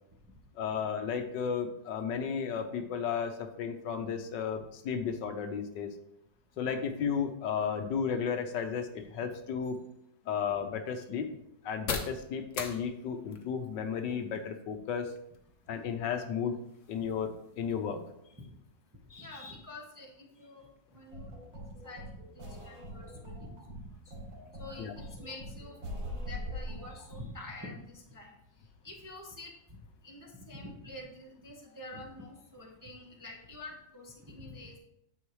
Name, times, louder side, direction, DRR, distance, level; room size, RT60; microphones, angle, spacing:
voice 1, 0.6-5.9 6.6-9.8 10.3-11.3 11.6-15.1 15.7-16.5 16.9-17.3 17.6-18.0 24.8-24.9, left 7 dB, 75° left, 6 dB, 1.4 m, -33 dB
sound 1, 9.7-27.3, left 5 dB, 50° left, 1.1 m, -48 dB
voice 2, 19.1-20.7 20.9-21.4 21.8-22.1 22.4-23.6 24.6-28.3 28.8-29.5 30.0-34.8, left 2 dB, 15° right, -1 dB, 0.8 m, -47 dB
sound 2, 21.1-27.3, equal, 75° right, 3.3 m, -42 dB
9.6 x 6.4 x 3.2 m, 0.78 s
omnidirectional pair, 2.0 m